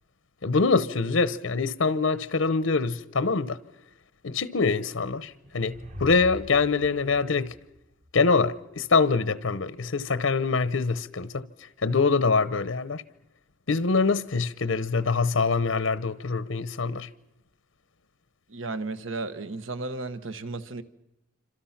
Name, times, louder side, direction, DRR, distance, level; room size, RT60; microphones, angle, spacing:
voice 1, 0.4-3.6 4.2-7.5 8.1-11.4 11.8-13.0 13.7-17.1, left 4 dB, 85° left, 0.9 m, -24 dB
sound 1, 5.3-8.5, equal, 35° right, 1.2 m, -43 dB
voice 2, 18.5-20.8, right 3 dB, 80° right, 1.3 m, -34 dB
27.5 x 26.0 x 5.9 m
head